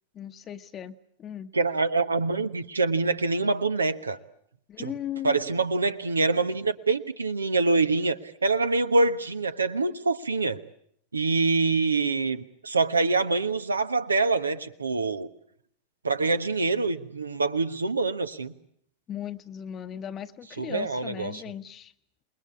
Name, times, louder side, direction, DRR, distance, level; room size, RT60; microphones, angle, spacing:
voice 1, 0.1-1.5 4.7-5.4 19.1-21.9, left 10 dB, 30° left, 9 dB, 1.1 m, -37 dB
voice 2, 1.5-4.2 4.8-4.9 5.2-10.6 11.1-15.3 16.0-18.5 20.6-21.4, right 3 dB, 75° right, 11 dB, 1.2 m, -25 dB
28.5 x 21.0 x 8.4 m, 0.70 s
figure-of-eight pair, 90°, 0 cm